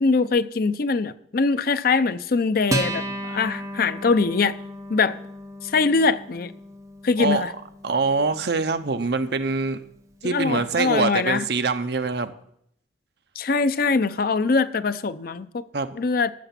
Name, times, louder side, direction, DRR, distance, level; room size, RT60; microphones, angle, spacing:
voice 1, 0.0-4.6 4.9-5.2 5.6-6.5 7.0-7.5 10.2-11.5 13.4-15.6 15.9-16.3, left 4 dB, 50° left, 0.5 m, -22 dB
Acoustic guitar, 2.7-9.5, right 1 dB, 15° right, 1.0 m, -34 dB
voice 2, 7.8-9.8 10.2-12.3 15.7-15.9, right 4 dB, 60° right, 0.7 m, -24 dB
13.5 x 6.9 x 5.8 m
head